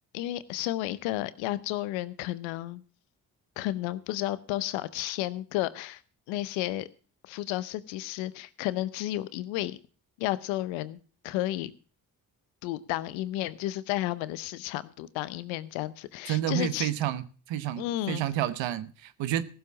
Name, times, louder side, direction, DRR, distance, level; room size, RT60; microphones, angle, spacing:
voice 1, 0.1-2.8 3.6-6.0 6.3-6.9 7.2-9.8 10.2-11.0 11.2-11.7 12.6-16.9 17.8-18.2, left 15 dB, 90° left, 0.7 m, -32 dB
voice 2, 16.3-19.4, right 12 dB, 80° right, 1.1 m, -30 dB
15.5 x 7.2 x 7.2 m
hypercardioid pair, 40°, 44 cm